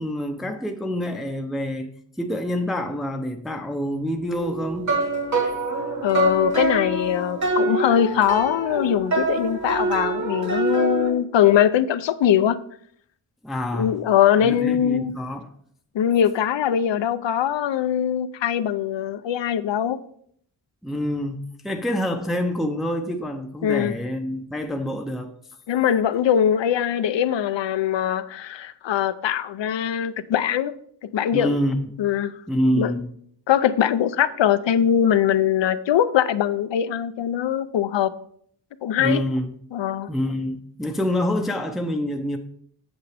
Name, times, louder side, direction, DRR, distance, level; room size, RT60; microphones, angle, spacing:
voice 1, 0.0-5.1 13.4-14.0 14.4-15.5 20.8-25.3 31.3-31.9 32.5-33.1 39.0-39.5 40.1-42.4, equal, ahead, 0.6 m, -26 dB
sound 1, 4.4-11.1, right 3 dB, 40° right, 1.5 m, -25 dB
voice 2, 6.0-12.6 13.7-15.1 15.9-20.0 23.6-23.9 25.7-30.7 31.0-31.6 32.0-32.3 32.7-32.9 33.5-38.1 38.8-39.2 39.7-40.1, left 9 dB, 75° left, 0.6 m, -21 dB
8.2 x 7.3 x 3.4 m
wide cardioid pair, 135°, 44 cm